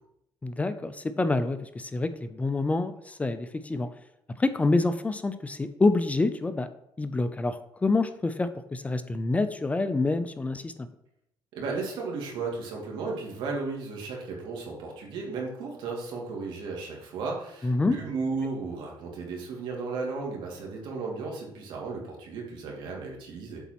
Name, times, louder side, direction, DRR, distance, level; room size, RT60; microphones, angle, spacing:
voice 1, 0.4-3.9 4.4-6.7 7.0-10.9 17.6-18.0, left 3 dB, 15° left, 10 dB, 0.5 m, -27 dB
voice 2, 11.5-23.6, right 4 dB, 75° right, -1 dB, 2.5 m, -34 dB
8.1 x 4.1 x 6.0 m, 0.79 s
cardioid pair, 110°, 8 cm